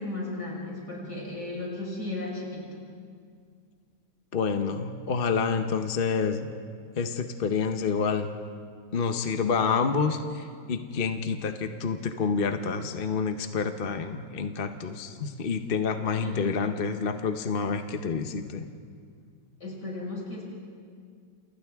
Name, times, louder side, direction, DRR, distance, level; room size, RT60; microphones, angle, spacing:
voice 1, 0.0-2.8 16.2-16.6 19.6-20.4, left 2 dB, 65° left, -3 dB, 6.1 m, -35 dB
voice 2, 4.3-6.5 7.0-8.3 8.9-18.6, left 5 dB, 40° left, 7 dB, 0.9 m, -28 dB
29.0 x 28.5 x 3.6 m, 2.1 s
omnidirectional pair, 1.9 m